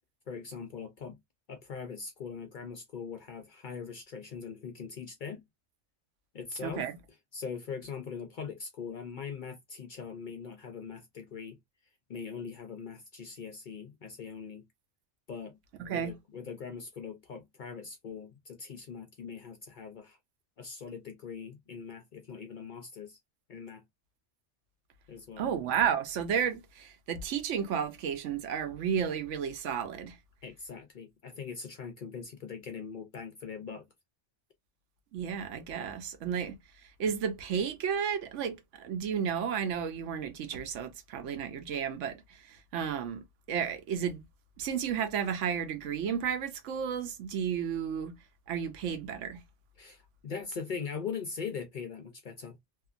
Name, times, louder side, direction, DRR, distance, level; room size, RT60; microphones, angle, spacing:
voice 1, 0.3-1.2 1.5-5.4 6.3-6.9 7.3-11.6 12.1-14.6 15.3-15.6 15.9-20.2 20.6-23.2 23.5-23.8 25.1-25.5 30.4-33.9 49.8-52.6, left 6 dB, 55° left, 0.5 m, -41 dB
voice 2, 6.6-7.0 15.8-16.1 25.4-30.2 35.1-36.6 37.0-44.2 44.6-48.1 48.5-49.4, right 8 dB, 75° right, 1.0 m, -32 dB
2.7 x 2.5 x 2.4 m
omnidirectional pair, 1.3 m